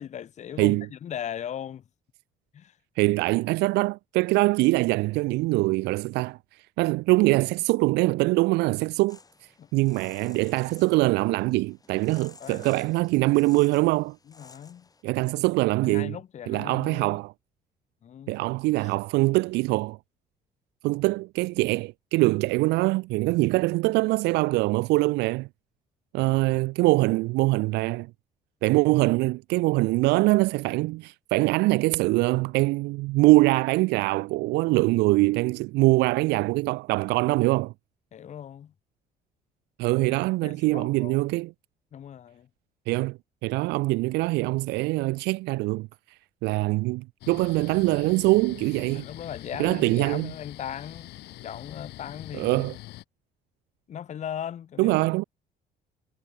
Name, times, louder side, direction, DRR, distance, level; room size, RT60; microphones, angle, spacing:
voice 1, 0.0-1.8 2.5-2.7 9.6-9.7 12.4-12.7 14.4-14.9 15.8-17.1 18.0-18.4 18.8-18.9 38.1-38.7 39.9-40.1 40.4-41.3 41.9-42.5 48.9-52.7 53.9-55.2, left 9 dB, 45° left, 1.0 m, -38 dB
voice 2, 3.0-6.4 6.8-9.2 9.7-14.2 15.0-16.2 16.5-17.3 18.3-20.0 20.8-25.5 26.1-28.1 28.6-37.7 39.8-41.5 42.9-45.9 46.4-49.1 49.6-50.3 52.3-52.8 54.8-55.2, right 22 dB, 90° right, 0.6 m, -23 dB
sound 1, 9.1-15.0, left 4 dB, 20° left, 4.4 m, -53 dB
sound 2, 47.2-53.0, left 17 dB, 80° left, 2.2 m, -44 dB
cardioid pair, 110°, 17 cm